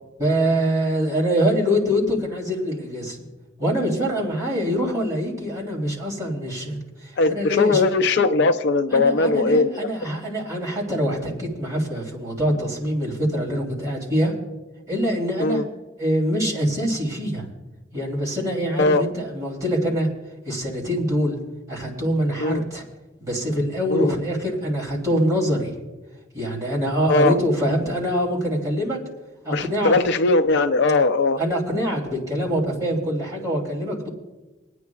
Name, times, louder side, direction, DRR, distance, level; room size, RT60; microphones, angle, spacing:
voice 1, 0.2-3.2 3.6-7.9 8.9-14.3 14.9-15.6 16.0-17.5 17.9-20.1 20.4-21.4 21.7-22.8 23.2-25.7 26.3-29.0 29.4-29.9 31.4-34.1, equal, 15° right, -5 dB, 3.1 m, -24 dB
voice 2, 7.2-10.1 15.4-15.6 18.8-19.0 22.4-22.6 23.9-24.1 27.1-27.4 29.5-31.4, left 3 dB, 55° left, 9 dB, 0.4 m, -19 dB
28.5 x 9.5 x 2.3 m, 1.1 s
head